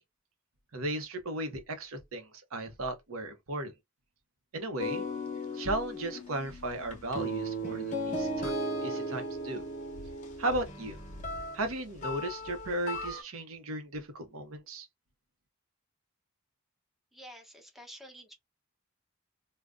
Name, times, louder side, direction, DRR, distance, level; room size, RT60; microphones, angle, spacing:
voice 1, 0.7-3.7 4.5-5.1 5.5-8.5 8.8-9.6 10.4-11.0 11.5-14.9, right 1 dB, 80° right, 0.7 m, -35 dB
sound 1, 4.8-13.2, equal, 35° left, 0.7 m, -36 dB
voice 2, 17.1-18.3, equal, ahead, 0.8 m, -49 dB
2.5 x 2.2 x 3.4 m
head